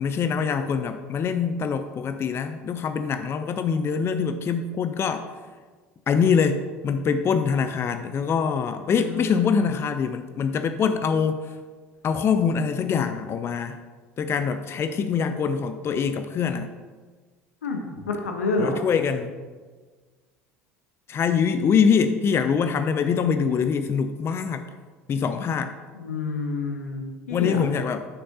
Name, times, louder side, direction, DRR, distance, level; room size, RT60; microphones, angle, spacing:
voice 1, 0.0-5.3 6.1-11.6 12.0-13.8 14.2-16.7 18.6-19.3 21.1-24.6 25.1-25.7 27.3-28.1, left 6 dB, 35° left, 9 dB, 0.5 m, -24 dB
voice 2, 8.9-9.7 17.6-17.8 18.1-18.8 25.9-27.6, left 3 dB, 80° left, 3 dB, 1.0 m, -28 dB
8.9 x 6.4 x 2.7 m, 1.4 s
hypercardioid pair, 70°, 8 cm